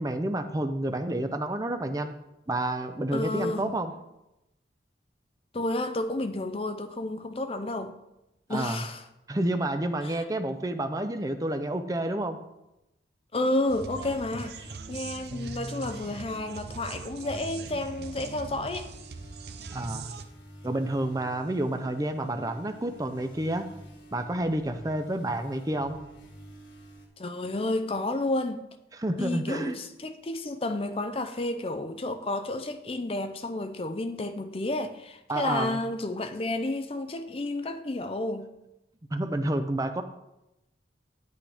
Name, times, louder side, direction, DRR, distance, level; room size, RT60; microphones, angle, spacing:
voice 1, 0.0-2.2 2.5-3.9 8.5-8.8 9.3-12.4 19.7-20.1 20.6-23.7 24.1-26.0 28.9-29.8 35.3-35.8 39.1-40.0, right 1 dB, 20° right, 0.5 m, -29 dB
voice 2, 3.1-3.8 5.5-7.9 8.5-9.0 10.0-10.2 13.3-18.9 27.2-28.6 29.1-38.5, left 2 dB, 30° left, 0.5 m, -31 dB
sound 1, 13.7-20.2, right 3 dB, 60° right, 0.6 m, -40 dB
sound 2, 18.8-27.1, right 1 dB, 85° left, 1.7 m, -50 dB
9.9 x 8.4 x 3.4 m
head